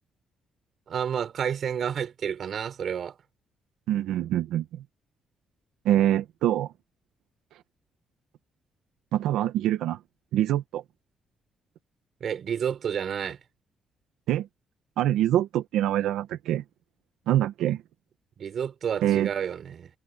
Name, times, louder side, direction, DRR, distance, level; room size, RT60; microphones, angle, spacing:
voice 1, 0.9-3.2 12.2-13.4 18.4-19.9, right 8 dB, 60° right, 5.4 m, -30 dB
voice 2, 3.9-4.8 5.8-6.7 9.1-10.0 10.3-10.8 14.3-14.5 15.0-16.6 17.3-17.8 19.0-19.3, right 12 dB, 90° right, 1.2 m, -25 dB
cardioid pair, 90°, 0 cm